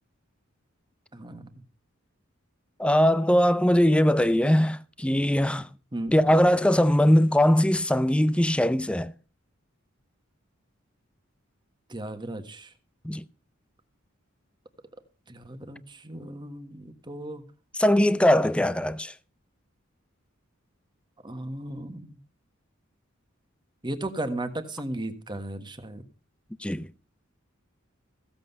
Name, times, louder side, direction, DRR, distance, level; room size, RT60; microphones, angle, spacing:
voice 1, 1.1-1.6 5.9-6.1 11.9-12.7 15.3-17.4 21.2-22.2 23.8-26.0, right 1 dB, 20° right, 1.5 m, -35 dB
voice 2, 2.8-5.7 6.1-9.1 13.0-13.2 17.8-19.1 26.6-26.9, equal, 5° left, 0.5 m, -21 dB
15.5 x 7.7 x 5.4 m
head